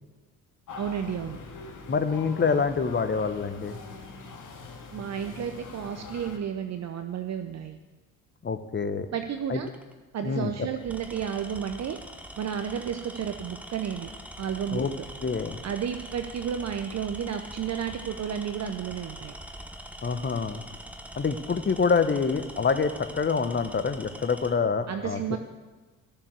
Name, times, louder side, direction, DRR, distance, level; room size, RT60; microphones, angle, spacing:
sound 1, 0.7-6.4, left 4 dB, 45° left, 2.5 m, -43 dB
voice 1, 0.8-1.4 4.9-7.8 9.1-9.7 10.1-12.0 12.4-14.1 14.4-15.1 15.6-19.4 24.9-25.4, right 8 dB, 40° right, 7 dB, 0.8 m, -32 dB
voice 2, 1.9-3.8 8.4-9.1 9.5-9.6 10.2-10.5 14.7-14.9 15.2-15.6 20.0-20.6 21.2-25.4, left 5 dB, 25° left, 9 dB, 1.1 m, -26 dB
Tools, 9.6-9.9 10.8-24.6, equal, 5° right, 1.2 m, -43 dB
13.5 x 7.2 x 8.0 m, 1.3 s
figure-of-eight pair, 55°, 43 cm